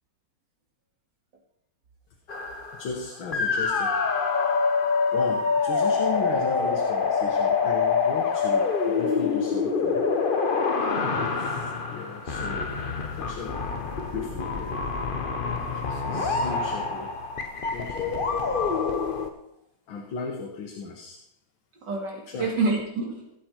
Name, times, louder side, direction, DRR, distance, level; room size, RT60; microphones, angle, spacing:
sound 1, 2.3-3.0 3.3-19.3, left 5 dB, 40° left, 0.8 m, -26 dB
voice 1, 2.7-4.5 5.1-10.1 11.9-13.6 14.1-14.7 16.1-17.2 17.7-18.2 19.9-21.2 22.3-22.5, left 5 dB, 80° left, 1 dB, 2.0 m, -36 dB
voice 2, 10.8-11.2 15.5-16.3 21.8-23.3, right 3 dB, 60° right, 0 dB, 2.9 m, -30 dB
16.5 x 7.8 x 4.5 m, 0.79 s
omnidirectional pair, 2.2 m